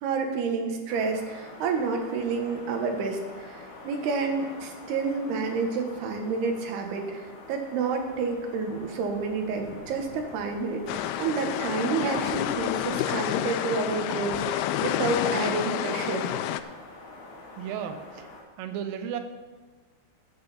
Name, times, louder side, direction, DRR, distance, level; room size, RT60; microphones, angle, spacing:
voice 1, 0.0-16.2, right 4 dB, 90° right, 4 dB, 3.3 m, -29 dB
sound 1, 0.9-18.4, left 2 dB, 45° left, 2.4 m, -46 dB
sound 2, 10.9-16.6, left 12 dB, 90° left, 2.5 m, -29 dB
voice 2, 17.6-18.3 18.6-19.2, right 9 dB, 75° right, 7 dB, 2.5 m, -34 dB
15.5 x 8.0 x 4.2 m, 1.3 s
omnidirectional pair, 4.4 m